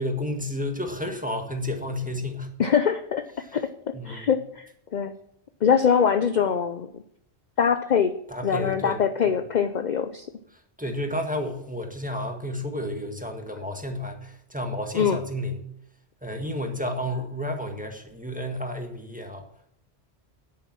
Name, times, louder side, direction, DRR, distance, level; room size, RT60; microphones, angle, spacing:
voice 1, 0.0-2.5 3.4-3.5 3.9-4.3 8.3-9.0 9.2-9.4 10.8-15.7 16.2-19.4, left 1 dB, 5° right, 4 dB, 1.6 m, -31 dB
voice 2, 2.6-3.2 3.5-5.1 5.6-6.9 7.6-8.1 8.4-10.3 14.9-15.2, left 7 dB, 50° left, 10 dB, 0.7 m, -23 dB
10.5 x 8.7 x 6.1 m, 0.73 s
omnidirectional pair, 1.1 m